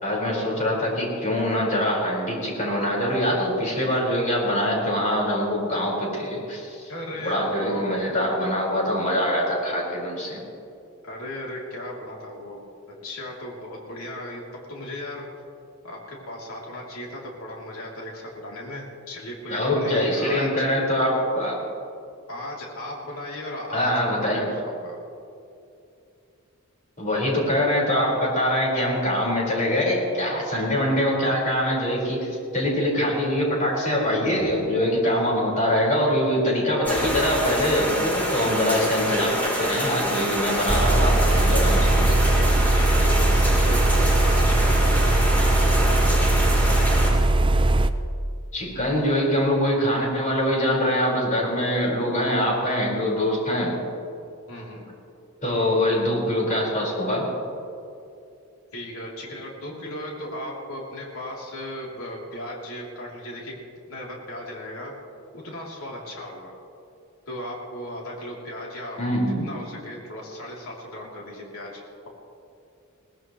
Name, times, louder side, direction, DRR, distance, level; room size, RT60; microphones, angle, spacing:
voice 1, 0.0-6.9 7.2-10.4 19.5-21.6 23.7-24.4 27.0-42.4 48.5-53.7 55.4-57.3 69.0-69.5, equal, 35° left, -3 dB, 4.8 m, -24 dB
voice 2, 6.9-8.3 11.0-12.6 13.0-14.4 14.7-15.2 15.8-20.7 22.3-25.0 42.3-43.3 43.6-45.4 54.5-54.9 58.7-63.5 63.9-64.9 65.3-66.5 67.3-69.0 69.4-72.1, left 1 dB, 80° left, -3 dB, 3.1 m, -36 dB
sound 1, 36.8-47.1, equal, 10° left, 3.6 m, -27 dB
sound 2, 40.7-47.9, right 2 dB, 25° right, 0.5 m, -19 dB
22.0 x 18.5 x 3.2 m, 2.6 s
head